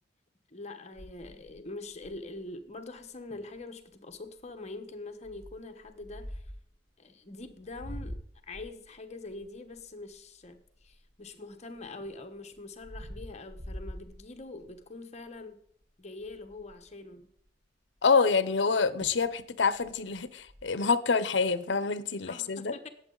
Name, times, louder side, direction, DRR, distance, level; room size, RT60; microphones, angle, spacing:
voice 1, 0.5-6.5 7.0-15.6 16.0-17.3 22.3-22.9, left 2 dB, 35° left, 7 dB, 1.1 m, -44 dB
sound 1, 1.0-2.4 3.0-3.1 3.3-3.6 4.1-4.4 5.2-6.7 7.4-11.3 11.8-14.8 15.3-15.5 15.8-15.9 16.2-16.9 18.6-18.7 19.0-19.3 19.7-20.6, equal, 65° right, 5.8 m, -45 dB
voice 2, 18.0-22.7, left 4 dB, 65° left, 15 dB, 0.8 m, -27 dB
18.5 x 7.6 x 3.9 m, 0.67 s
head